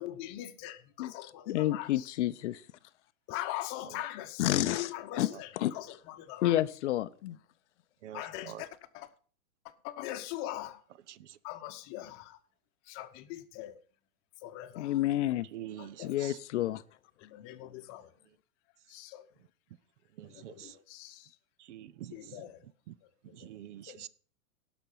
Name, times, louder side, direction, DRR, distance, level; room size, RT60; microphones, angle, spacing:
voice 1, 0.0-2.1 3.3-6.6 8.1-9.1 9.6-10.8 11.4-12.4 12.9-13.8 14.4-15.0 15.8-16.3 17.2-18.1 18.9-19.2 20.2-21.3 22.1-22.7 23.3-23.5 23.9-24.0, left 14 dB, 30° left, 1.0 m, -42 dB
voice 2, 1.0-2.6 4.4-4.9 5.2-5.7 6.4-7.4 14.8-15.5 16.0-16.8, left 13 dB, 50° left, 0.6 m, -30 dB
voice 3, 8.0-8.6 11.1-11.4 15.5-16.4 20.2-20.8 21.6-22.5 22.9-23.0 23.3-24.1, right 12 dB, 55° right, 0.6 m, -46 dB
17.0 x 6.1 x 5.6 m
hypercardioid pair, 140°, 44 cm